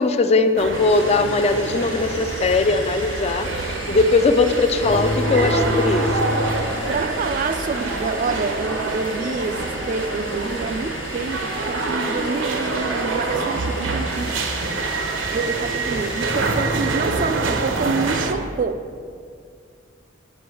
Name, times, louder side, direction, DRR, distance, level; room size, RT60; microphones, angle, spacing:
voice 1, 0.0-6.3, left 3 dB, 35° left, 0.4 m, -20 dB
sound 1, 0.6-18.3, right 3 dB, 80° right, 0.8 m, -26 dB
sound 2, 0.7-16.6, left 4 dB, 85° left, 1.2 m, -38 dB
sound 3, 4.8-7.4, left 2 dB, 70° left, 0.8 m, -27 dB
voice 2, 6.9-14.3 15.3-18.8, right 4 dB, 40° right, 0.3 m, -27 dB
7.8 x 5.9 x 6.2 m
head